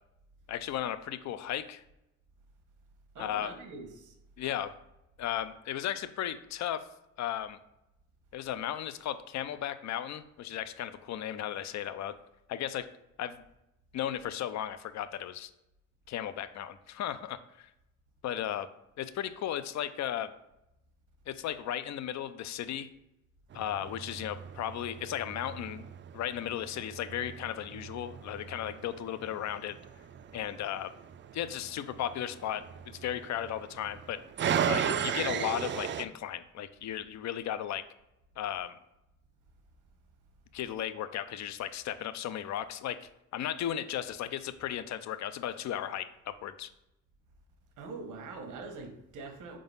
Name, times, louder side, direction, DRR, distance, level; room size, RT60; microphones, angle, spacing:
voice 1, 0.5-1.8 3.2-3.6 4.4-4.7 5.2-6.9 7.2-7.6 8.3-12.2 12.5-12.9 13.2-13.4 13.9-15.5 16.1-17.7 18.2-18.7 19.0-20.3 21.3-22.9 23.5-25.9 26.1-29.8 30.3-30.9 31.3-32.6 33.0-34.2 34.7-37.8 38.4-38.8 40.5-46.7, left 11 dB, 65° left, 13 dB, 0.6 m, -35 dB
voice 2, 3.1-4.1 47.8-49.6, right 3 dB, 80° right, 4 dB, 1.2 m, -43 dB
sound 1, 23.5-36.0, right 8 dB, 40° right, 0.4 m, -37 dB
4.9 x 3.8 x 5.4 m, 0.87 s
cardioid pair, 90°, 30 cm